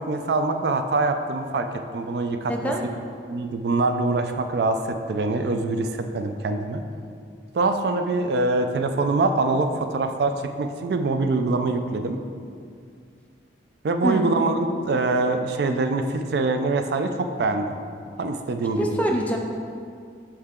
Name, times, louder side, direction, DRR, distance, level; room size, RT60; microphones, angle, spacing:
voice 1, 0.0-1.7 1.9-2.7 3.3-6.8 7.5-12.2 13.8-17.8 18.2-19.0, right 3 dB, 60° right, 7 dB, 0.3 m, -24 dB
voice 2, 2.5-2.8 14.0-14.3 18.8-19.4, equal, 10° left, 1 dB, 0.4 m, -24 dB
6.5 x 4.4 x 3.6 m, 2.3 s
head